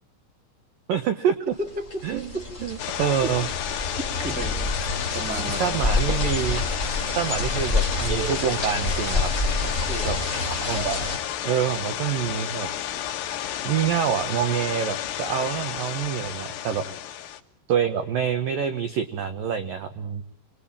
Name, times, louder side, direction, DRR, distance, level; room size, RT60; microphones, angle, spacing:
voice 1, 0.9-1.4 2.0-2.3 2.6-3.5 5.3-6.6 7.2-9.3 10.0-10.2 10.7-11.0 11.4-12.7 13.6-16.9 17.7-20.2, right 8 dB, 85° right, 8 dB, 1.9 m, -26 dB
voice 2, 1.6-2.0 2.3-2.4 3.2-3.3 4.2-4.6 5.1-5.8 9.6-10.1 16.8-17.0, right 1 dB, 5° right, 3 dB, 0.8 m, -33 dB
sound 1, 1.7-11.2, left 3 dB, 20° left, 2.9 m, -28 dB
sound 2, 2.8-17.4, left 11 dB, 80° left, 4.2 m, -32 dB
sound 3, 3.3-8.4, right 10 dB, 60° right, 5.4 m, -43 dB
28.0 x 21.5 x 8.8 m, 0.63 s
omnidirectional pair, 5.9 m